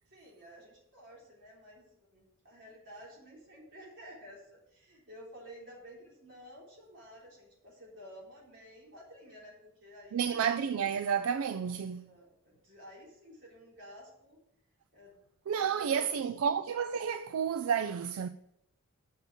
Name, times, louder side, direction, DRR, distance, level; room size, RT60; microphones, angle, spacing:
voice 1, 0.1-10.4 11.6-11.8 12.0-14.4 14.9-16.4, equal, 60° right, 3.7 m, -52 dB
voice 2, 10.1-12.1 15.5-18.3, right 7 dB, 85° right, 0.4 m, -31 dB
6.8 x 5.8 x 7.3 m
head